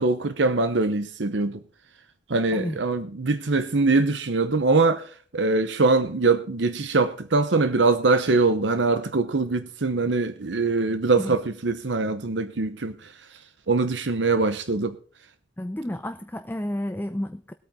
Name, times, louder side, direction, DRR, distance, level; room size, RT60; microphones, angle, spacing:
voice 1, 0.0-1.6 2.3-13.1 13.7-15.0, right 3 dB, 80° right, 0.9 m, -23 dB
voice 2, 15.6-17.5, left 1 dB, 10° left, 0.6 m, -31 dB
20.5 x 8.8 x 3.7 m
head